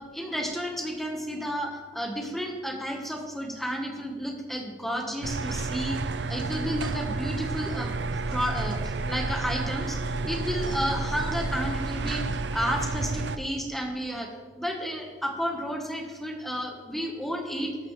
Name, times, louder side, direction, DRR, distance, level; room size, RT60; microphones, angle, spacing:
voice 1, 0.0-6.0 6.3-7.9 8.3-12.2 12.5-14.3 14.6-17.8, equal, ahead, 2 dB, 1.3 m, -32 dB
sound 1, 5.2-13.4, right 3 dB, 85° right, 0.6 m, -30 dB
sound 2, 10.8-12.8, equal, 25° left, 1.3 m, -46 dB
13.0 x 11.5 x 3.3 m, 1.5 s
head